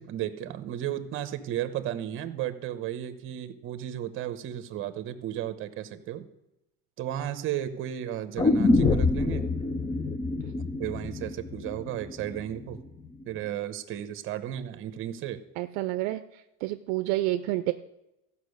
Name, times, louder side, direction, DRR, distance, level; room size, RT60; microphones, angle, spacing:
voice 1, 0.0-6.3 7.0-9.5 10.8-12.8 13.2-15.4, right 11 dB, 40° right, 12 dB, 1.0 m, -34 dB
sound 1, 8.4-12.4 12.7-12.8, left 3 dB, 15° left, 0.5 m, -26 dB
voice 2, 15.6-17.7, right 17 dB, 65° right, 9 dB, 0.6 m, -29 dB
14.5 x 5.6 x 6.6 m, 0.90 s
cardioid pair, 150°, 31 cm